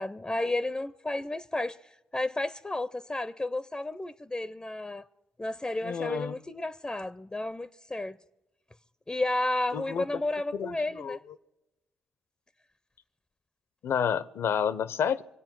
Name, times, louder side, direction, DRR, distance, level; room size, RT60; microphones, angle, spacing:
voice 1, 0.0-5.1 5.4-8.2 9.1-11.2, left 2 dB, 20° left, 0.5 m, -32 dB
voice 2, 5.8-6.3 9.7-10.0 10.5-11.2 13.8-15.2, left 7 dB, 65° left, 0.7 m, -30 dB
24.0 x 8.7 x 6.1 m
hypercardioid pair, 50°, 5 cm